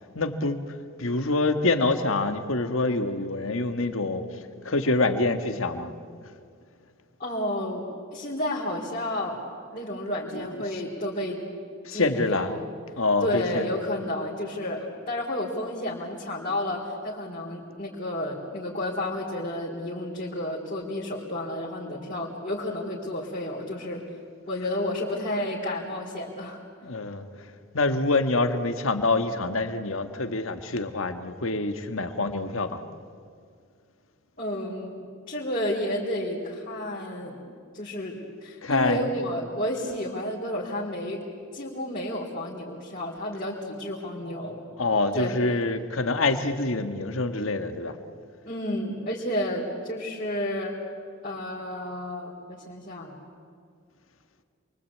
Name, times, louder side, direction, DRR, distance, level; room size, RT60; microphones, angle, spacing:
voice 1, 0.1-4.4 4.6-5.9 10.3-10.8 11.8-12.5 13.0-13.7 26.8-27.3 27.7-32.8 38.6-39.1 44.8-48.0, left 2 dB, 80° left, 8 dB, 1.6 m, -26 dB
voice 2, 7.2-7.9 8.1-9.4 9.7-11.4 11.9-12.5 13.2-24.0 24.5-26.6 34.4-37.4 37.7-41.2 41.5-44.6 45.1-45.4 48.5-50.7 51.2-53.1, left 1 dB, 40° left, -5 dB, 3.7 m, -31 dB
28.0 x 23.0 x 8.6 m, 2.2 s
head